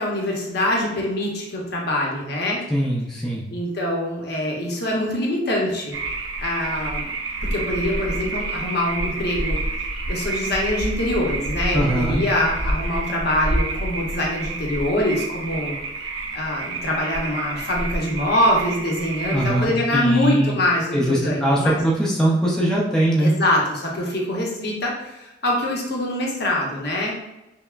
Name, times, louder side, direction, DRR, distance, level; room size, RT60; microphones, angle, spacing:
voice 1, 0.0-2.6 3.5-5.9 6.4-7.1 7.4-9.6 10.1-15.8 16.3-21.8 23.2-27.2, left 1 dB, 55° left, -2 dB, 0.8 m, -24 dB
voice 2, 2.7-3.4 11.7-12.2 19.3-20.6 20.9-23.3, right 1 dB, 5° left, -5 dB, 0.5 m, -21 dB
sound 1, 5.9-19.6, right 2 dB, 75° right, 0.5 m, -28 dB
5.4 x 2.1 x 2.4 m, 0.96 s
head